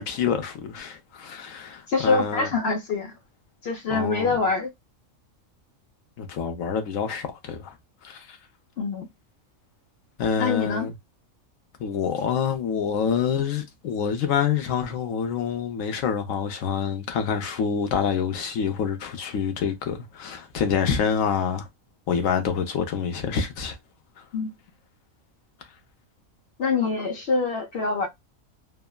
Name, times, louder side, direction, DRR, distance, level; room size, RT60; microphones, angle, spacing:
voice 1, 0.0-2.5 3.9-4.3 6.2-7.8 8.0-8.4 10.2-10.9 11.8-21.7 22.1-23.8, left 7 dB, 75° left, 1.2 m, -27 dB
voice 2, 1.9-3.1 3.6-4.7 8.8-9.1 10.4-10.9 24.3-24.5 26.6-28.1, left 4 dB, 55° left, 0.8 m, -25 dB
3.4 x 2.0 x 2.2 m
omnidirectional pair, 1.4 m